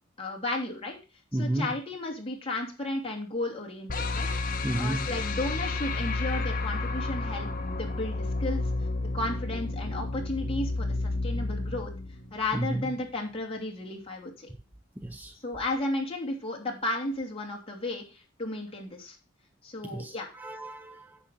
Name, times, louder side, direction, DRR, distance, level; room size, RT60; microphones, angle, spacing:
voice 1, 0.2-1.0 1.4-8.6 9.1-11.9 12.3-14.5 15.4-19.2 19.6-20.3, left 2 dB, 30° left, 2.8 m, -34 dB
voice 2, 1.3-1.8 4.6-5.1 12.5-12.9 15.0-15.4 19.8-21.2, right 1 dB, 10° right, 0.5 m, -32 dB
sound 1, 3.9-13.0, left 2 dB, 45° left, 1.1 m, -31 dB
10.0 x 6.8 x 3.9 m
head